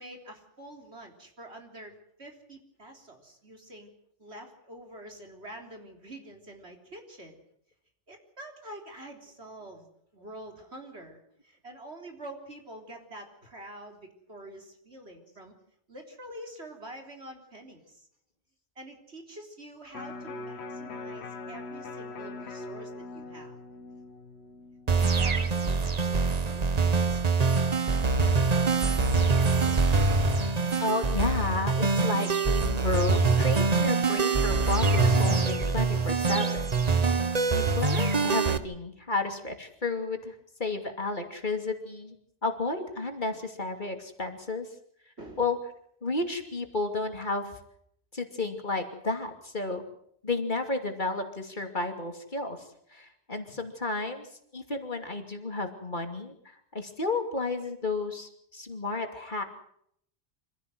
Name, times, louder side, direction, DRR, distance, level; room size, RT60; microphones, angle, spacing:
voice 1, 0.0-3.9 4.2-7.4 8.1-15.5 15.9-18.1 18.8-23.6 24.9-29.3 45.2-45.5, right 1 dB, 70° right, 3 dB, 4.1 m, -47 dB
Electric guitar, 19.9-26.1 26.5-26.6, left 2 dB, 70° left, 1.5 m, -42 dB
sound 1, 24.9-38.6, right 4 dB, 35° right, 1.1 m, -24 dB
voice 2, 30.8-36.6 37.5-42.2 42.4-44.7 45.4-45.6 46.0-47.5 48.1-49.8 50.2-54.3 54.5-59.4, left 3 dB, 45° left, 5 dB, 2.8 m, -32 dB
25.5 x 15.5 x 7.9 m, 0.68 s
omnidirectional pair, 1.2 m